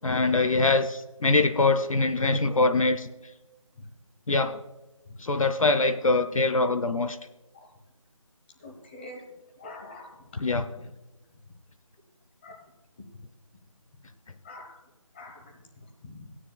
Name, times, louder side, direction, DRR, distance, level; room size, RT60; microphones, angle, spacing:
voice 1, 0.0-3.1 4.3-4.6 5.2-7.2 10.4-10.7, left 3 dB, 70° left, 10 dB, 0.7 m, -23 dB
voice 2, 8.6-9.2 9.6-10.2 12.4-12.6 14.4-14.8 15.1-15.4 16.1-16.3, left 2 dB, 20° left, 2 dB, 1.2 m, -44 dB
17.0 x 10.0 x 2.3 m, 1.1 s
figure-of-eight pair, 165°, 18 cm